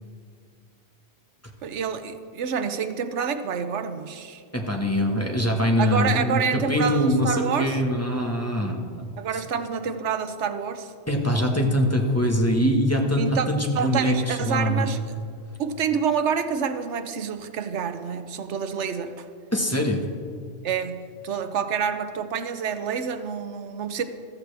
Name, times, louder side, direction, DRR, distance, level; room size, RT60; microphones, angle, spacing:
voice 1, 1.6-4.4 5.8-7.7 9.2-10.9 13.2-13.5 13.8-15.2 15.6-19.2 20.6-24.0, right 6 dB, 90° right, 9 dB, 1.1 m, -28 dB
voice 2, 4.5-9.1 9.3-9.4 11.1-14.9 19.5-20.0, equal, 15° left, 1 dB, 1.3 m, -23 dB
14.5 x 14.0 x 3.4 m, 2.1 s
omnidirectional pair, 1.2 m